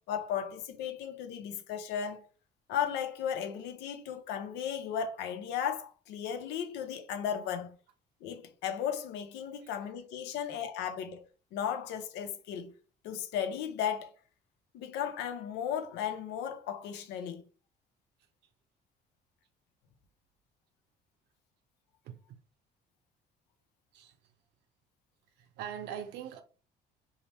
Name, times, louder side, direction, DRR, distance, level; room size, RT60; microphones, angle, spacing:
voice 1, 0.1-2.3 2.7-7.8 8.2-11.2 11.5-12.7 13.0-14.1 14.7-17.4, left 8 dB, 90° left, 0.6 m, -35 dB
voice 2, 22.0-22.4 23.9-24.2 25.4-26.4, right 9 dB, 85° right, 0.6 m, -42 dB
2.8 x 2.0 x 3.2 m
cardioid pair, 110°, 17 cm